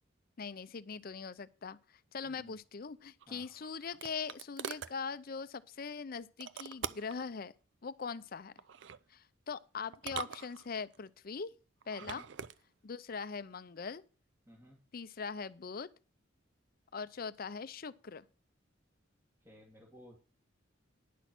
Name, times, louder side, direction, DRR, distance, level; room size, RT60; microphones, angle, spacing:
voice 1, 0.4-7.5 7.8-8.5 9.1-11.5 11.9-12.2 12.8-14.0 14.9-15.9 16.9-18.2, left 5 dB, 50° left, 0.5 m, -41 dB
voice 2, 2.2-2.6 3.3-3.5 12.0-12.3 14.5-14.8 19.4-20.2, equal, 15° right, 2.3 m, -57 dB
sound 1, 3.2-5.0 6.4-7.2 8.6-9.0 9.9-11.0 11.8-12.6, right 7 dB, 65° right, 0.5 m, -43 dB
10.0 x 6.3 x 6.0 m
head